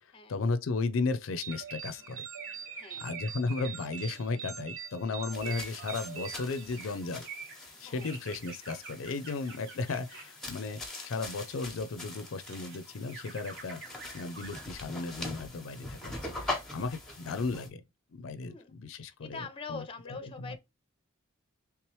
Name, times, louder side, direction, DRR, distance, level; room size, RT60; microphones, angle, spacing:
voice 1, 0.0-2.3 3.0-7.2 7.8-13.8 14.1-17.8 18.1-20.5, left 3 dB, 75° left, 0.4 m, -35 dB
sound 1, 1.4-7.2, right 8 dB, 90° right, 0.6 m, -43 dB
sound 2, 1.5-4.7 5.3-11.6 12.1-14.7, right 4 dB, 60° right, 1.1 m, -48 dB
voice 2, 2.7-3.1 7.8-8.2 16.6-16.9 18.4-20.6, left 4 dB, 25° left, 0.6 m, -44 dB
sound 3, 5.3-17.7, left 2 dB, 5° left, 0.9 m, -43 dB
3.4 x 3.0 x 3.0 m
head